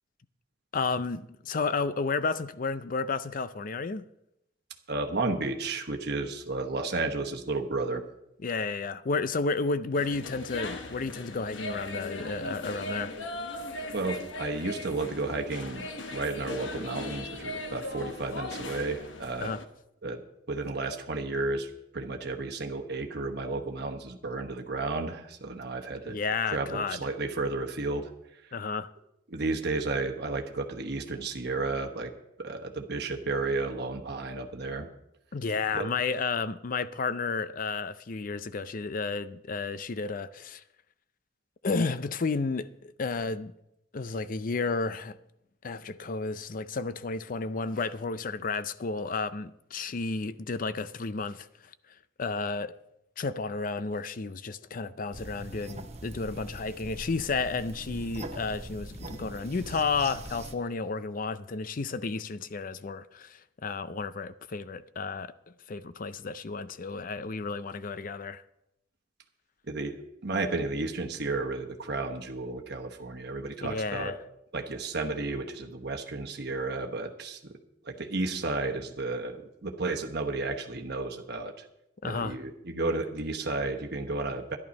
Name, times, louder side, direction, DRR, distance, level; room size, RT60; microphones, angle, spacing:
voice 1, 0.7-4.0 8.4-13.1 13.8-13.9 19.4-19.6 26.0-27.0 28.5-28.9 35.3-40.6 41.6-43.5 43.9-45.2 45.6-51.5 52.2-52.7 53.2-65.3 65.7-68.4 73.6-74.1 82.0-82.4, left 4 dB, 45° left, 0.5 m, -32 dB
voice 2, 4.9-8.0 13.9-19.5 20.0-20.2 20.5-21.7 21.9-26.2 26.5-28.1 29.3-32.1 32.4-34.9 35.7-35.9 69.7-74.1 74.5-77.5 77.9-81.5 82.0-84.6, right 3 dB, 60° right, 1.1 m, -32 dB
sound 1, 10.0-19.6, left 2 dB, 80° left, 1.1 m, -39 dB
sound 2, 55.1-60.5, right 2 dB, 35° right, 0.9 m, -42 dB
11.5 x 11.0 x 5.3 m
head